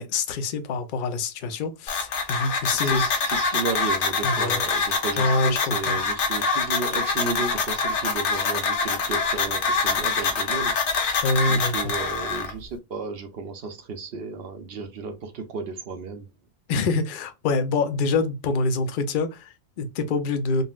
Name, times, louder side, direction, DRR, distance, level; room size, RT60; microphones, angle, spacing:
voice 1, 0.0-3.0 4.2-4.6 5.2-6.0 11.2-11.9 16.7-20.6, left 3 dB, 60° left, 0.6 m, -25 dB
sound 1, 1.9-12.5, left 4 dB, 75° left, 1.0 m, -25 dB
voice 2, 2.7-10.8 11.5-16.3, right 4 dB, 60° right, 0.7 m, -33 dB
3.8 x 2.0 x 2.3 m
omnidirectional pair, 1.2 m